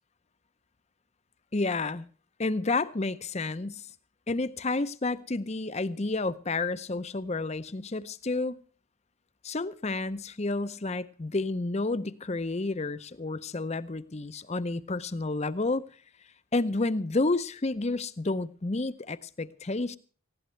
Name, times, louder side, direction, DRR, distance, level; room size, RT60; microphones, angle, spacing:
voice 1, 1.5-2.1 2.4-3.9 4.3-8.6 9.4-15.8 16.5-20.0, left 3 dB, 30° left, 0.6 m, -30 dB
19.5 x 15.5 x 3.2 m
head